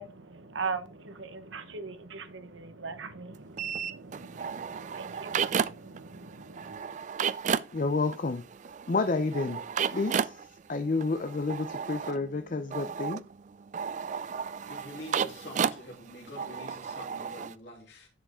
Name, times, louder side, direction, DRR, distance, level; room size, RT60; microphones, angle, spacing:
voice 1, 0.0-6.8, right 4 dB, 80° right, 1.0 m, -40 dB
sound 1, 3.6-6.0 6.3-17.5, right 7 dB, 40° right, 0.3 m, -33 dB
voice 2, 7.7-8.5 8.9-9.6 9.9-10.4 10.7-13.2, left 3 dB, 45° left, 0.5 m, -30 dB
voice 3, 14.7-18.1, left 1 dB, 65° left, 3.0 m, -46 dB
10.0 x 5.2 x 3.6 m
head